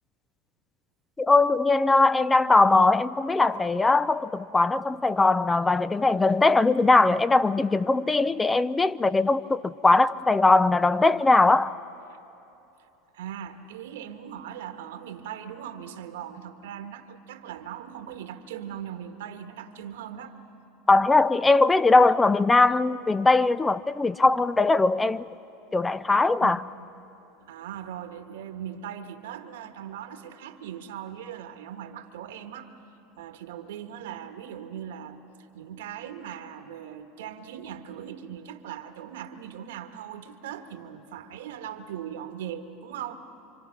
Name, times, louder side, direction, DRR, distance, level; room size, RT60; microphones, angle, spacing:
voice 1, 1.2-11.7 20.9-25.3 25.7-26.6, left 3 dB, 15° left, 0.5 m, -20 dB
voice 2, 13.1-20.4 26.4-26.6 27.4-32.7 33.2-35.2 35.5-43.2, right 9 dB, 85° right, 1.5 m, -39 dB
27.5 x 25.0 x 5.9 m
supercardioid pair, 105°, 0 cm